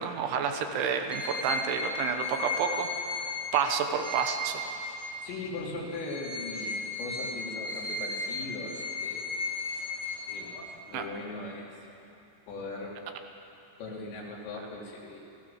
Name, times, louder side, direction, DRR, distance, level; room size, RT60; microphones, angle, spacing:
voice 1, 0.0-3.2 3.5-4.7 10.9-11.1, right 6 dB, 75° right, 5 dB, 3.6 m, -30 dB
sound 1, 1.1-5.5 5.9-10.8, left 2 dB, 20° left, 2.0 m, -35 dB
voice 2, 5.2-9.3 10.3-11.8 12.5-13.1 13.8-15.2, left 2 dB, 65° left, -2 dB, 5.0 m, -39 dB
29.5 x 17.0 x 7.2 m, 2.8 s
omnidirectional pair, 5.8 m